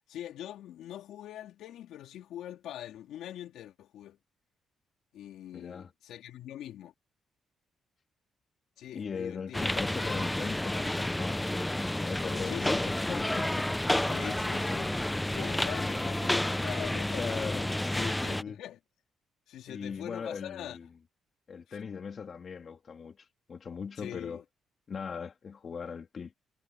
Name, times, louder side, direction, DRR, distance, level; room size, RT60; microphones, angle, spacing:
voice 1, 0.1-4.2 5.1-6.9 8.8-9.6 12.3-12.7 14.1-15.0 15.3-18.8 19.5-20.8 21.7-21.8 24.0-24.4, left 12 dB, 80° left, 4.0 m, -43 dB
voice 2, 5.5-5.9 8.9-13.7 15.8-16.1 17.1-18.6 19.7-20.9 21.5-24.4 24.9-26.3, left 6 dB, 45° left, 3.5 m, -40 dB
sound 1, 9.5-18.4, left 1 dB, 10° left, 0.8 m, -30 dB
cardioid pair, 90°, 0 cm